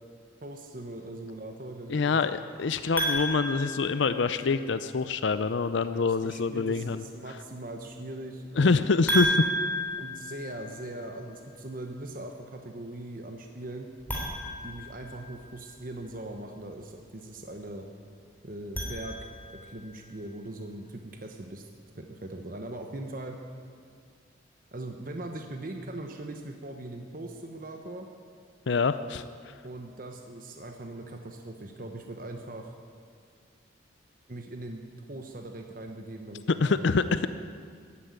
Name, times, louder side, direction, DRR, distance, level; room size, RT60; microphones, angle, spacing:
voice 1, 0.4-2.2 5.9-8.9 10.0-13.9 14.6-17.8 18.4-21.7 22.0-23.4 24.7-28.1 29.6-32.7 34.3-37.1, right 1 dB, 45° right, 4 dB, 1.1 m, -40 dB
voice 2, 1.9-7.0 8.6-9.4 28.7-29.5 36.6-37.3, left 4 dB, 65° left, 12 dB, 0.5 m, -26 dB
sound 1, 3.0-4.7 9.1-11.1 14.0-15.6 18.5-19.7, equal, 10° left, 3.4 m, -32 dB
15.0 x 10.0 x 9.7 m, 2.2 s
head